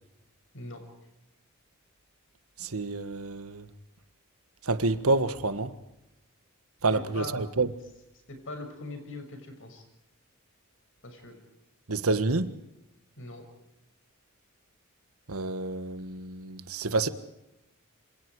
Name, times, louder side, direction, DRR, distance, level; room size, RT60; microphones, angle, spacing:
voice 1, 2.6-3.7 4.6-5.7 6.8-7.7 11.9-12.5 15.3-17.1, right 3 dB, 75° right, 1.5 m, -28 dB
voice 2, 6.9-7.3 8.3-9.8 11.0-11.3 13.2-13.4, left 2 dB, 60° left, 6.5 m, -41 dB
27.5 x 26.5 x 4.8 m
head